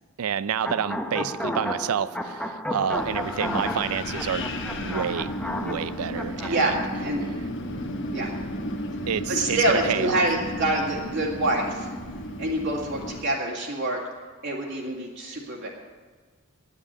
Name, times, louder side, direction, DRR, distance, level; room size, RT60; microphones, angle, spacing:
voice 1, 0.2-6.8 9.1-10.2, right 8 dB, 85° right, 0.4 m, -29 dB
sound 1, 0.6-6.7, left 1 dB, 5° left, 0.7 m, -32 dB
Wind, 2.9-13.2, left 1 dB, 60° left, 1.3 m, -33 dB
voice 2, 9.3-11.9 12.4-14.0 14.4-15.7, right 1 dB, 55° right, 2.2 m, -26 dB
9.8 x 9.1 x 9.8 m
head